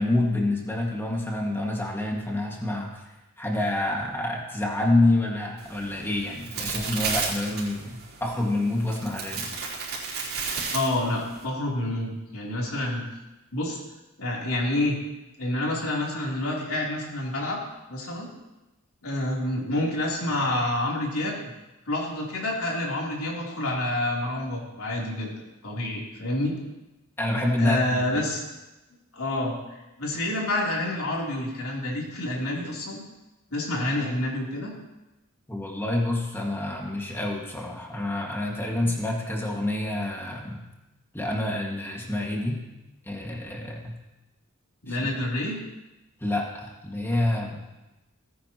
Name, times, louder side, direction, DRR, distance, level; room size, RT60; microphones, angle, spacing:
voice 1, 0.0-3.0 3.4-9.5 27.2-28.3 35.5-40.7 41.1-42.6 43.1-44.0 44.9-45.1 46.2-47.7, left 1 dB, 10° left, -1 dB, 1.8 m, -27 dB
sound 1, 5.6-11.4, right 4 dB, 70° right, 4.0 m, -33 dB
voice 2, 10.7-13.1 13.5-13.8 14.2-15.0 15.4-17.6 17.9-18.3 19.0-21.4 21.9-25.3 25.6-26.5 27.6-28.4 29.1-33.0 33.5-34.7 44.8-45.6, left 1 dB, 80° left, -3 dB, 3.3 m, -28 dB
18.0 x 9.9 x 3.0 m, 1.0 s
head